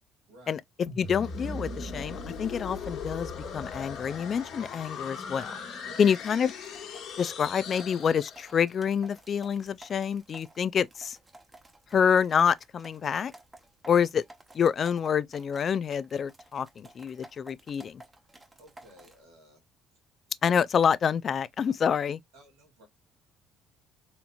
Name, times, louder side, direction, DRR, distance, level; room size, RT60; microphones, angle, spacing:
sound 1, 0.9-8.7, left 4 dB, 65° left, 1.4 m, -39 dB
voice 1, 1.0-5.6 6.0-6.5 7.2-11.2 11.9-13.3 13.9-14.2 14.5-18.0 20.4-22.2, left 7 dB, 45° left, 0.3 m, -27 dB
sound 2, 6.2-19.2, right 2 dB, 20° right, 1.0 m, -54 dB
voice 2, 18.6-19.6 22.3-22.9, right 1 dB, 85° right, 2.2 m, -54 dB
4.2 x 2.9 x 2.3 m
supercardioid pair, 75°, 0 cm